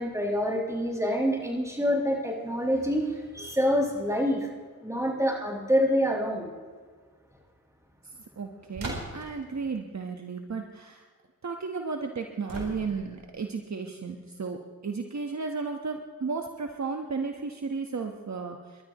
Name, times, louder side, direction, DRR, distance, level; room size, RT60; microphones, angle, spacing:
voice 1, 0.0-4.5 4.8-6.5, equal, 10° right, -3 dB, 6.1 m, -26 dB
voice 2, 8.4-11.1 11.4-18.8, right 4 dB, 50° right, 4 dB, 1.3 m, -34 dB
sound 1, 8.7-9.4 12.5-13.2, right 2 dB, 65° right, 4.0 m, -37 dB
30.0 x 12.5 x 3.1 m, 1.5 s
cardioid pair, 45°, 36 cm